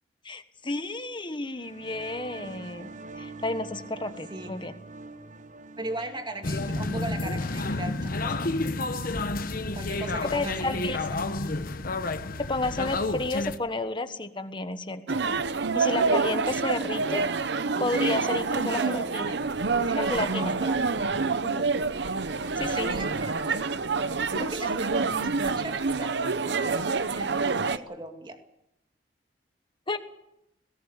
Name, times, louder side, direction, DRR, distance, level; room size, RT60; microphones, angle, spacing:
voice 1, 0.2-2.9 3.2-4.7 9.9-10.0 10.3-11.0 12.4-15.2 15.7-17.3 17.8-19.2 20.0-20.5 21.4-21.7 22.2-22.9 24.3-24.5 29.9-30.0, left 2 dB, 25° left, 9 dB, 1.3 m, -31 dB
sound 1, 1.5-8.9, right 3 dB, 45° right, 1.0 m, -46 dB
voice 2, 4.1-4.5 5.8-8.8 9.7-11.0 18.5-19.1 19.8-20.9 22.6-23.6 24.1-28.4, right 2 dB, 25° right, 5 dB, 2.3 m, -39 dB
sound 2, 6.4-13.6, left 2 dB, 50° left, 1.1 m, -30 dB
sound 3, 15.1-27.8, right 4 dB, 65° right, 0.8 m, -27 dB
20.5 x 17.5 x 8.3 m, 0.84 s
head